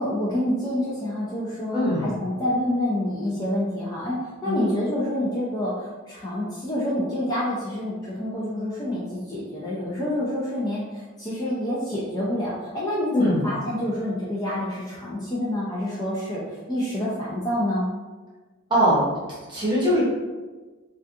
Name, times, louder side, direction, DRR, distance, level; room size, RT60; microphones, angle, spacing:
voice 1, 0.0-17.9, left 1 dB, 20° left, -7 dB, 0.4 m, -27 dB
voice 2, 1.7-2.2 4.4-4.7 13.1-13.5 18.7-19.0 19.5-20.0, equal, 20° right, -8 dB, 0.9 m, -21 dB
2.3 x 2.3 x 2.6 m, 1.3 s
head